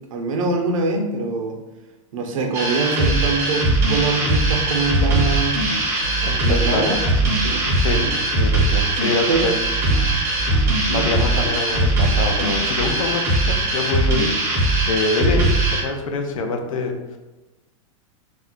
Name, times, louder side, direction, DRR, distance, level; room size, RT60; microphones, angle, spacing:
voice 1, 0.1-1.6 2.1-5.6 6.4-7.0 7.4-7.7 7.9-8.1 9.3-9.5 9.9-10.1 10.9-11.1, right 3 dB, 75° right, 3 dB, 0.5 m, -23 dB
sound 1, 2.5-15.8, right 2 dB, 15° right, 0.5 m, -20 dB
sound 2, 3.6-13.0, right 4 dB, 50° left, 0.8 m, -29 dB
voice 2, 6.2-6.9 7.8-8.0 8.4-9.5 10.9-17.2, left 3 dB, 75° left, 4 dB, 0.5 m, -25 dB
2.4 x 2.1 x 3.6 m, 1.1 s
supercardioid pair, 170°, 17 cm